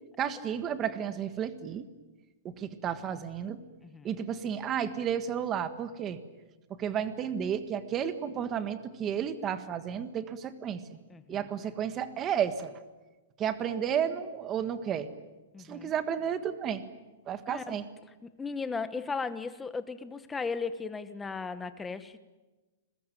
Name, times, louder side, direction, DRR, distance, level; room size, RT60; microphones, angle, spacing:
voice 1, 0.2-1.9 2.4-3.6 4.0-6.2 6.8-11.0 11.3-12.7 13.4-15.1 15.6-16.8 17.3-17.8, right 8 dB, 20° right, 11 dB, 1.6 m, -32 dB
voice 2, 11.1-11.4 15.5-15.9 17.5-17.8 18.2-22.2, left 4 dB, 10° left, 12 dB, 1.2 m, -36 dB
29.0 x 21.5 x 9.2 m, 1.2 s
hypercardioid pair, 160°, 0 cm